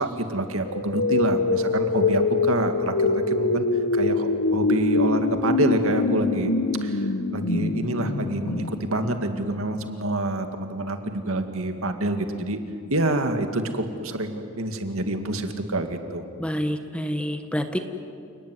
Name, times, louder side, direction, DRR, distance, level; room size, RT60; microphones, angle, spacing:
voice 1, 0.0-3.7 3.9-6.5 6.8-12.6 12.9-16.3, right 1 dB, 65° right, 6 dB, 2.2 m, -27 dB
sound 1, 0.6-9.6, left 3 dB, 75° left, 0.9 m, -24 dB
voice 2, 16.4-17.8, equal, 5° left, 7 dB, 1.3 m, -27 dB
29.5 x 19.0 x 9.6 m, 2.4 s
head